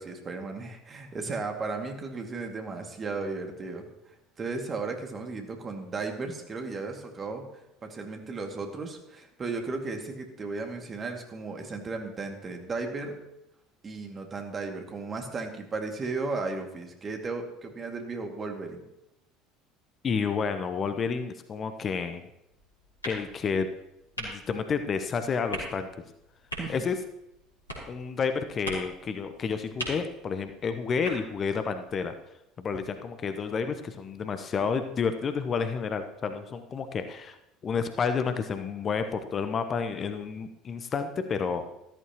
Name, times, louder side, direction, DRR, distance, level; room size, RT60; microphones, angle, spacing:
voice 1, 0.0-7.4 7.8-13.2 13.8-18.8 26.6-26.7, right 3 dB, 30° right, 3 dB, 2.2 m, -35 dB
voice 2, 20.0-22.2 23.0-23.7 24.2-25.9 26.7-27.0 27.9-32.1 32.6-37.4 37.6-41.6, left 5 dB, 35° left, 9 dB, 1.0 m, -30 dB
sound 1, 22.5-32.1, right 1 dB, 85° left, 3.3 m, -42 dB
14.0 x 13.5 x 3.0 m, 0.87 s
figure-of-eight pair, 65°, 0 cm